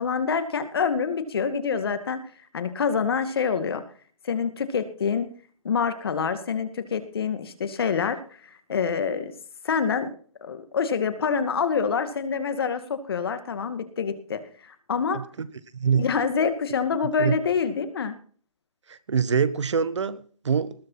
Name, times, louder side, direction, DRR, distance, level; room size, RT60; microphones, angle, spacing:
voice 1, 0.0-3.8 4.2-5.3 5.6-9.3 9.6-10.2 10.4-15.2 15.9-18.1, left 6 dB, 45° left, 10 dB, 2.2 m, -26 dB
voice 2, 15.1-15.5 15.8-16.0 17.2-17.3 18.9-20.7, right 6 dB, 55° right, 16 dB, 1.4 m, -24 dB
20.0 x 6.7 x 5.7 m, 0.42 s
hypercardioid pair, 170°, 18 cm